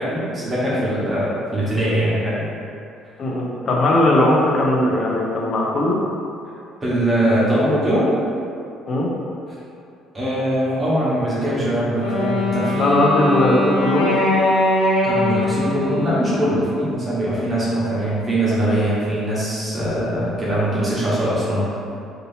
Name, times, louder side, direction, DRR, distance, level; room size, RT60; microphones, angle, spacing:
voice 1, 0.0-2.4 6.8-8.1 10.1-13.0 15.0-21.8, right 1 dB, 25° right, -8 dB, 1.1 m, -21 dB
voice 2, 3.2-6.0 8.9-9.1 12.8-14.2 19.8-20.1, left 1 dB, 45° left, -3 dB, 0.6 m, -19 dB
Wind instrument woodwind instrument, 12.0-17.0, left 2 dB, 85° left, 0.8 m, -22 dB
3.5 x 2.7 x 2.7 m, 2.6 s
cardioid pair, 120°, 0 cm